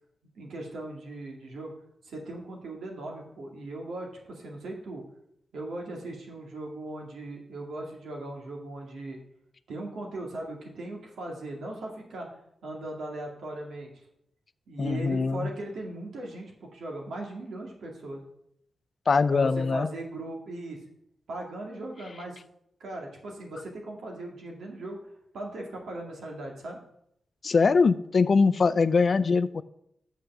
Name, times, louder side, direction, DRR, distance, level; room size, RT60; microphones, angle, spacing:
voice 1, 0.3-1.7 2.0-5.0 5.5-9.2 9.7-12.3 12.6-13.9 14.7-18.2 19.3-20.8 21.3-22.4 22.8-25.0 25.3-26.8, right 2 dB, 85° right, 0 dB, 2.1 m, -38 dB
voice 2, 14.8-15.5 19.1-19.9 27.4-29.6, left 4 dB, 55° left, 15 dB, 0.4 m, -22 dB
6.6 x 5.8 x 7.2 m, 0.74 s
cardioid pair, 70°, 0 cm